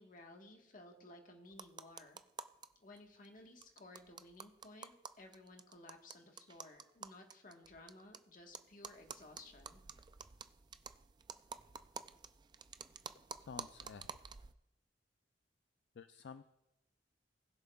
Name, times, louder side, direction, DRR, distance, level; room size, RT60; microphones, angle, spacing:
voice 1, 0.0-2.2 2.8-9.8, left 2 dB, 50° left, 2 dB, 1.4 m, -57 dB
sound 1, 1.5-2.7 3.0-3.1 3.3-3.4 3.6-8.2 8.5-14.5, right 6 dB, 25° right, 0.3 m, -50 dB
voice 2, 13.4-14.2 15.9-16.4, left 5 dB, 65° left, 10 dB, 0.4 m, -51 dB
20.0 x 7.1 x 2.3 m, 0.90 s
head